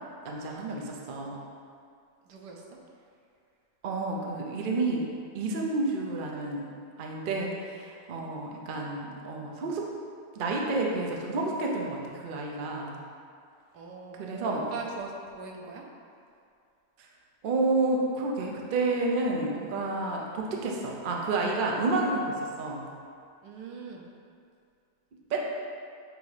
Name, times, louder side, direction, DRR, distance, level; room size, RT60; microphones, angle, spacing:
voice 1, 0.2-1.4 3.8-5.0 5.3-6.6 7.0-9.8 10.3-12.9 14.1-14.7 17.4-22.8 25.3-25.4, right 2 dB, 50° right, -1 dB, 0.6 m, -30 dB
voice 2, 2.3-2.6 8.2-8.4 13.7-15.8 23.4-24.1, right 4 dB, 85° right, 0 dB, 1.3 m, -41 dB
7.7 x 2.7 x 4.8 m, 2.3 s
omnidirectional pair, 1.7 m